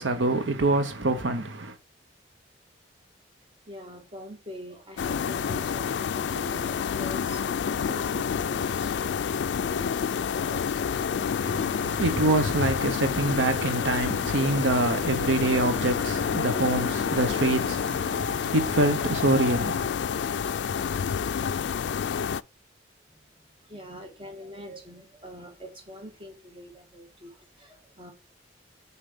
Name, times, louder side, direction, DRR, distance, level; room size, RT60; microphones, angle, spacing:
voice 1, 0.0-1.8 11.4-19.9, right 2 dB, 85° right, 1.0 m, -25 dB
voice 2, 3.7-12.3 23.5-28.1, equal, 30° right, 1.7 m, -44 dB
sound 1, 5.0-22.4, left 7 dB, 70° left, 0.3 m, -28 dB
6.8 x 4.5 x 5.4 m
head